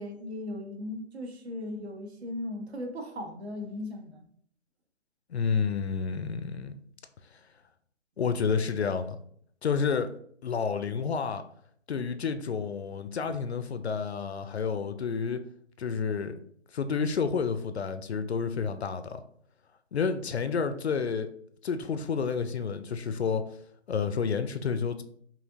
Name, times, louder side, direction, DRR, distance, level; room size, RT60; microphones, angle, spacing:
voice 1, 0.0-4.2, left 1 dB, 55° right, 1.0 m, -37 dB
voice 2, 5.3-6.7 8.2-9.2 9.6-10.1 10.4-11.4 11.9-15.4 15.8-16.3 16.7-19.2 19.9-21.3 21.6-23.4 23.9-25.0, left 6 dB, 60° left, 0.5 m, -30 dB
5.0 x 2.8 x 2.7 m
hypercardioid pair, 165°, 37 cm